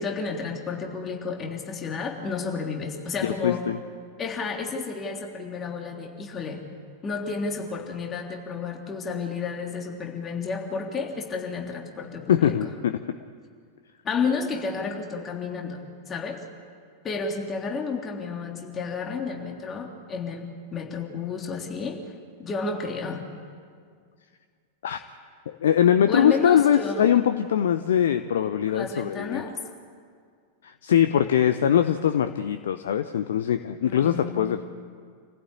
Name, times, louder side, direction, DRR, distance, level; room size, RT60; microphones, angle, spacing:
voice 1, 0.0-3.6 4.2-6.6 7.0-12.5 14.0-16.4 17.0-22.0 22.4-23.2 26.1-27.1 28.7-29.6 33.8-34.4, left 4 dB, 25° left, 1 dB, 3.2 m, -31 dB
voice 2, 3.2-3.8 12.3-13.2 24.8-25.0 25.5-29.4 30.6-34.6, left 9 dB, 60° left, 10 dB, 0.8 m, -22 dB
28.0 x 15.5 x 8.7 m, 2.1 s
figure-of-eight pair, 90°, 0 cm